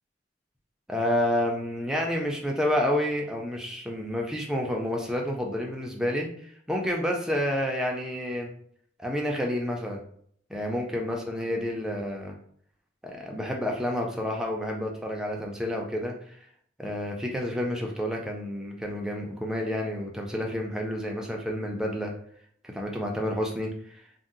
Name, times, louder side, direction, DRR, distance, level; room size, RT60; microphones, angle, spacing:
voice 1, 0.9-8.5 9.0-10.0 10.5-12.4 13.0-16.4 16.8-22.1 22.6-24.0, left 1 dB, 5° right, 0 dB, 0.4 m, -29 dB
2.6 x 2.0 x 3.8 m, 0.64 s
head